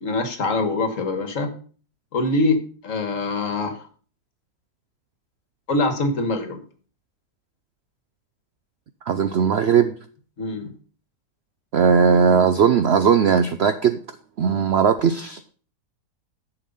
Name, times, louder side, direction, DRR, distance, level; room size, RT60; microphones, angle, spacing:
voice 1, 0.0-1.5 2.1-3.9 5.7-6.6 10.4-10.7, left 2 dB, 55° left, 8 dB, 1.8 m, -24 dB
voice 2, 9.1-9.9 11.7-14.0 14.4-15.4, right 6 dB, 65° right, 10 dB, 0.6 m, -18 dB
11.0 x 6.9 x 5.4 m, 0.41 s
omnidirectional pair, 1.7 m